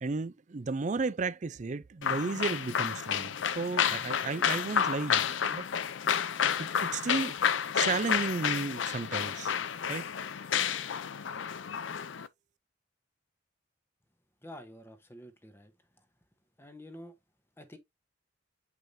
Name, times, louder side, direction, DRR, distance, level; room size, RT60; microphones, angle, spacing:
voice 1, 0.0-5.6 6.6-7.4 7.7-9.5 9.9-10.1, right 4 dB, 40° right, 0.4 m, -33 dB
sound 1, 2.0-12.3, left 8 dB, 80° left, 0.5 m, -30 dB
voice 2, 14.4-15.7 16.6-17.1 17.6-17.8, left 1 dB, 10° left, 1.0 m, -48 dB
8.1 x 4.6 x 2.7 m
head